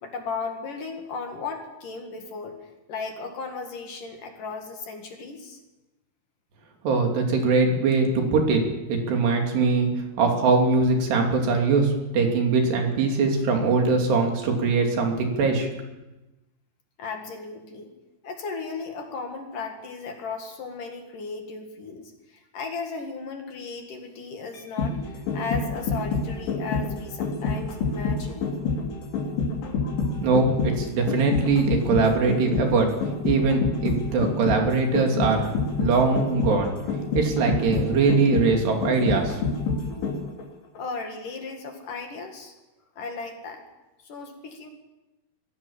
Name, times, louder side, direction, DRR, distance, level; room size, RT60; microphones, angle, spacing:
voice 1, 0.0-2.5 2.9-5.6 9.3-9.4 17.0-17.9 18.2-28.4 29.6-30.2 40.7-42.5 43.0-43.6 44.0-44.7, left 4 dB, 55° left, 4 dB, 3.4 m, -36 dB
voice 2, 6.8-8.6 8.9-9.9 10.2-15.7 30.2-32.9 33.2-35.5 35.8-36.7 37.1-39.4, right 4 dB, 75° right, 2 dB, 5.0 m, -22 dB
sound 1, 24.5-40.4 40.8-40.9, left 4 dB, 80° left, 5.2 m, -27 dB
22.5 x 16.0 x 7.2 m, 1.0 s
omnidirectional pair, 4.9 m